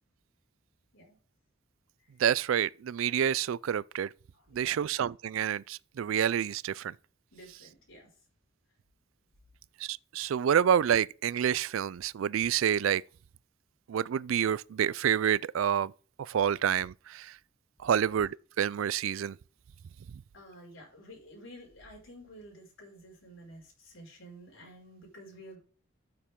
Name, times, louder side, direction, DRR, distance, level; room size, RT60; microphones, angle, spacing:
voice 1, 2.2-4.1 4.5-6.9 9.9-13.0 13.9-15.9 16.3-17.3 17.8-19.4, right 9 dB, 90° right, 0.4 m, -28 dB
voice 2, 4.3-4.8 7.3-8.1 20.3-25.6, equal, 80° left, 5.5 m, -51 dB
12.5 x 6.9 x 3.7 m
head